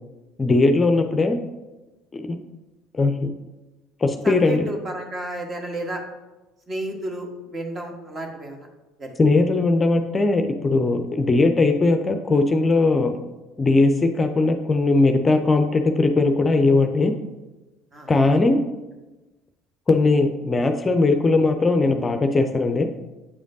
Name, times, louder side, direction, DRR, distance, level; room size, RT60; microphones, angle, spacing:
voice 1, 0.4-1.4 2.1-2.4 3.0-3.3 4.0-4.7 9.2-13.2 13.6-17.1 18.1-18.6 19.9-22.9, left 3 dB, 25° left, 6 dB, 0.5 m, -19 dB
voice 2, 4.2-6.0 6.7-8.7 9.0-9.1 17.9-18.1, right 1 dB, 30° right, 3 dB, 1.3 m, -32 dB
8.5 x 5.0 x 2.7 m, 1.1 s
figure-of-eight pair, 60°, 0 cm